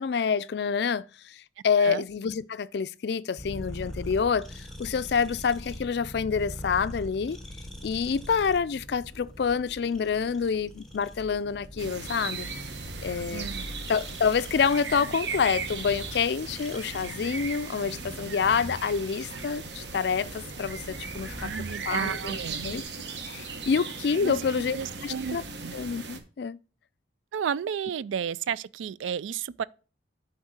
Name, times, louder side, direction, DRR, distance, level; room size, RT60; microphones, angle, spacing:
voice 1, 0.0-7.4 7.8-12.5 13.0-13.5 13.9-21.5 21.8-22.8 23.2-25.4 25.7-26.6, left 6 dB, 60° left, 0.4 m, -27 dB
sound 1, 3.4-22.8, equal, ahead, 0.9 m, -43 dB
sound 2, 11.8-26.2, right 4 dB, 65° right, 1.0 m, -38 dB
voice 2, 13.3-13.7 21.4-22.7 24.2-24.4 24.7-25.4 25.6-25.8 27.3-29.6, right 7 dB, 85° right, 0.3 m, -32 dB
8.1 x 3.6 x 6.4 m
head